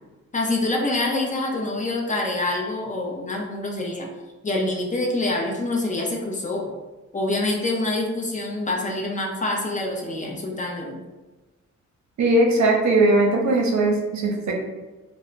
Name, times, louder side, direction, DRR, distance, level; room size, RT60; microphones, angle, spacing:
voice 1, 0.3-4.1 4.4-6.7 7.1-11.0, left 2 dB, 25° left, -1 dB, 0.5 m, -26 dB
voice 2, 12.2-14.5, right 2 dB, 70° right, 0 dB, 0.6 m, -19 dB
2.1 x 2.0 x 3.7 m, 1.2 s
cardioid pair, 80°, 29 cm